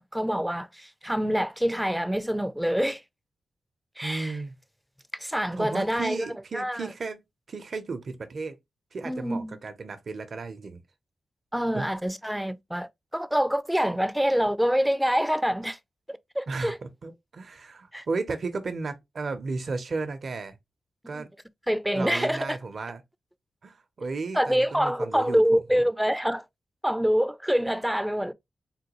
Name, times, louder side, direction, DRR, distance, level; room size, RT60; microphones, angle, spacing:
voice 1, 0.0-3.0 4.0-4.4 5.1-6.3 6.5-6.9 9.0-9.6 11.5-15.8 16.1-16.8 17.9-18.1 21.1-21.2 21.7-22.6 24.3-26.4 26.8-28.3, equal, 5° right, 0.4 m, -26 dB
voice 2, 4.0-4.6 5.6-7.2 7.5-8.6 8.9-10.8 11.7-11.9 16.5-20.6 21.1-21.3 21.9-23.0 23.6-25.9, right 4 dB, 60° right, 0.6 m, -34 dB
3.6 x 2.2 x 2.9 m
cardioid pair, 65°, 0 cm